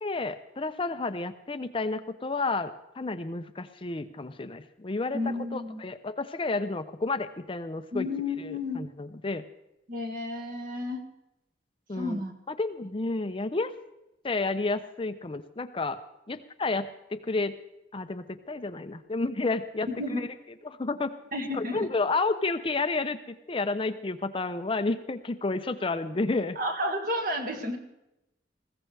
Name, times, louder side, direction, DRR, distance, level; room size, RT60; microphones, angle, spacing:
voice 1, 0.0-2.7 3.0-5.2 5.5-8.1 8.4-9.4 11.9-12.2 12.5-13.7 14.2-16.0 16.3-17.5 17.9-20.3 20.6-21.1 21.5-26.6, left 3 dB, 30° left, 10 dB, 0.6 m, -31 dB
voice 2, 5.1-5.8 7.9-8.8 9.9-11.0 11.9-12.3 19.9-20.2 21.3-21.9 26.6-27.8, left 1 dB, 50° right, 3 dB, 2.1 m, -31 dB
20.5 x 16.0 x 3.4 m, 0.89 s
head